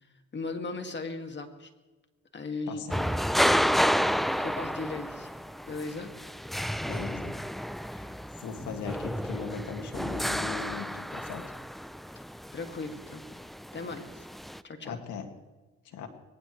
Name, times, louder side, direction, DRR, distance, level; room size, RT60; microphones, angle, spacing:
voice 1, 0.3-1.7 2.3-3.2 4.4-5.3 5.7-6.1 12.5-13.2 13.7-14.3 14.6-15.0, left 3 dB, 35° left, 6 dB, 2.2 m, -37 dB
voice 2, 2.7-3.0 6.8-7.4 7.9-8.1 8.4-11.4 14.8-15.3 15.8-16.1, left 6 dB, 80° left, 5 dB, 2.2 m, -39 dB
sound 1, 2.9-14.6, equal, ahead, 0.5 m, -31 dB
21.5 x 19.0 x 3.3 m, 1.2 s
cardioid pair, 90°, 30 cm